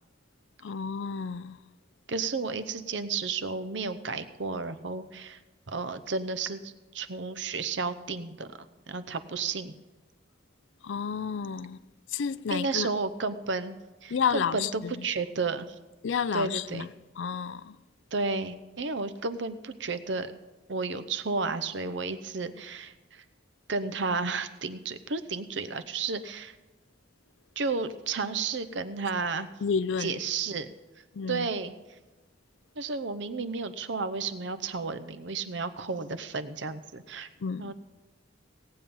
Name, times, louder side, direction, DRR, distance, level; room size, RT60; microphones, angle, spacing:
voice 1, 0.6-1.6 10.8-11.8 12.1-12.9 14.1-15.1 16.0-16.9 17.2-17.8 29.6-30.2 31.1-31.5 37.4-37.7, left 6 dB, 80° left, 0.4 m, -31 dB
voice 2, 2.1-5.4 5.7-8.5 8.9-9.7 12.5-13.7 14.0-15.7 16.3-16.9 18.1-20.3 20.7-23.2 23.7-26.5 27.6-29.5 30.0-30.7 31.3-31.7 32.8-37.3 37.6-37.7, right 4 dB, 75° right, 0.8 m, -32 dB
18.0 x 8.7 x 5.4 m
head